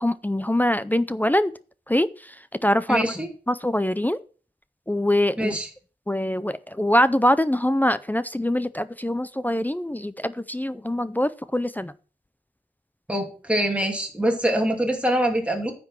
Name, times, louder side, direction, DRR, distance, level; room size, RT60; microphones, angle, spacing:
voice 1, 0.0-1.5 1.9-2.1 2.6-3.0 3.5-4.2 4.9-5.6 6.1-11.9, left 1 dB, 10° left, 14 dB, 0.4 m, -23 dB
voice 2, 2.9-3.3 5.4-5.7 13.1-15.7, right 1 dB, 5° right, 1 dB, 2.5 m, -24 dB
9.8 x 6.0 x 6.2 m, 0.39 s
wide cardioid pair, 115°, 17 cm